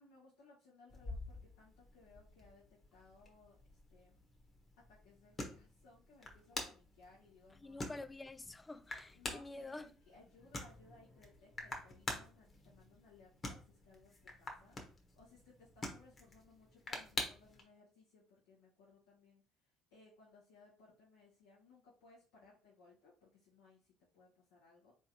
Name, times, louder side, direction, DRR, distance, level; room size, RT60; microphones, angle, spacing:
voice 1, 0.0-4.2 4.9-7.8 9.1-14.8 15.1-24.9, left 3 dB, 90° left, 1.4 m, -64 dB
sound 1, 0.9-17.6, left 2 dB, 40° left, 1.3 m, -48 dB
voice 2, 7.6-9.9, left 2 dB, 20° left, 0.3 m, -48 dB
3.8 x 3.4 x 2.9 m
supercardioid pair, 75°, 0 cm